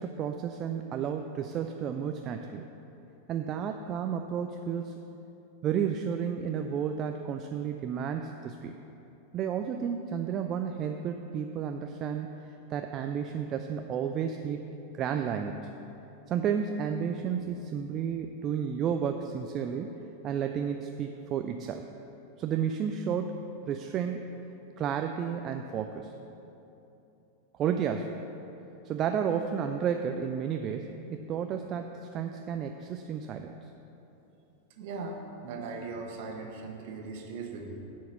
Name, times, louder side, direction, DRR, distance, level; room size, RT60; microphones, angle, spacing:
voice 1, 0.0-2.6 3.3-5.0 5.6-8.8 9.3-12.3 12.7-14.7 14.9-15.7 16.3-19.9 20.2-21.8 22.4-24.4 24.8-26.1 27.6-28.2 28.9-33.5, right 7 dB, 30° right, 5 dB, 0.4 m, -32 dB
voice 2, 34.8-37.7, right 4 dB, 50° right, 2 dB, 1.2 m, -39 dB
10.5 x 4.6 x 7.1 m, 3.0 s
figure-of-eight pair, 90°, 0 cm